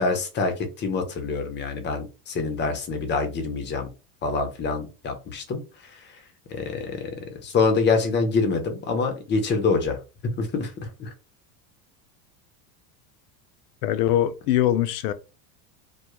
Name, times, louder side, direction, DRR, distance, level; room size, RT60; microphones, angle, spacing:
voice 1, 0.0-3.9 4.2-6.2 6.5-10.0 10.4-11.1, left 4 dB, 25° left, 0.5 m, -26 dB
voice 2, 13.8-15.1, left 12 dB, 75° left, 0.5 m, -22 dB
2.2 x 2.1 x 2.9 m
supercardioid pair, 115°, 46 cm